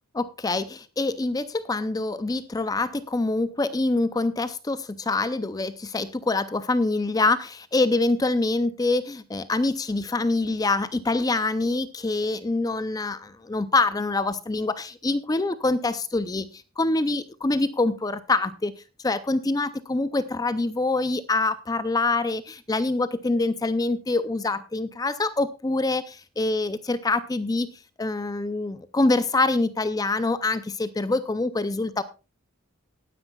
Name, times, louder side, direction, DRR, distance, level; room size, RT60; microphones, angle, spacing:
voice 1, 0.1-18.7 19.0-27.7 28.0-32.0, left 2 dB, 20° left, 13 dB, 0.4 m, -25 dB
19.0 x 9.7 x 2.3 m, 0.31 s
head